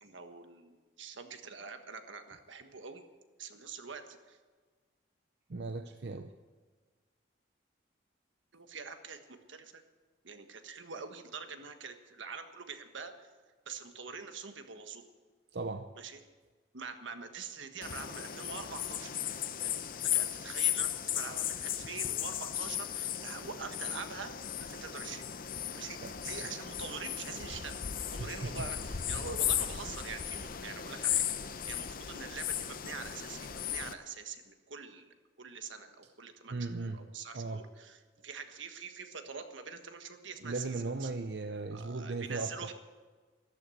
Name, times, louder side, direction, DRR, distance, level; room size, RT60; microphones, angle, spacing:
voice 1, 0.0-3.0 3.4-4.4 8.5-9.8 10.2-13.3 13.6-15.1 16.0-16.2 16.7-19.1 19.6-19.7 20.0-24.3 24.6-25.2 25.7-27.8 28.1-41.1 41.7-42.7, right 5 dB, 80° right, 7 dB, 1.4 m, -45 dB
voice 2, 5.5-6.3 15.5-15.9 26.0-26.1 26.4-26.5 28.2-28.3 29.1-29.2 36.5-37.0 37.3-37.6 40.4-42.5, right 3 dB, 60° right, 8 dB, 0.6 m, -37 dB
sound 1, 17.8-33.9, left 10 dB, 45° left, 0.7 m, -36 dB
13.5 x 12.5 x 7.8 m, 1.4 s
head